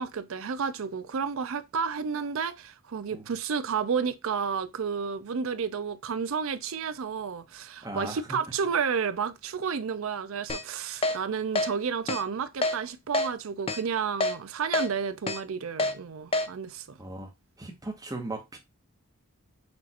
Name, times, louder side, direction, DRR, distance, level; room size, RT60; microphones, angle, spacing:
voice 1, 0.0-17.0, right 6 dB, 70° right, 0.5 m, -31 dB
voice 2, 7.8-8.4 17.0-17.3 17.6-18.6, right 2 dB, 15° right, 1.0 m, -37 dB
Keyboard (musical), 10.5-10.6 11.0-11.2 11.6-11.7 12.1-12.2 12.6-12.8 13.1-13.3 13.7-13.8 14.2-14.3 14.7-14.9 15.3-15.4 15.8-15.9 16.3-16.5, left 2 dB, 25° left, 0.3 m, -26 dB
6.0 x 2.5 x 2.9 m
head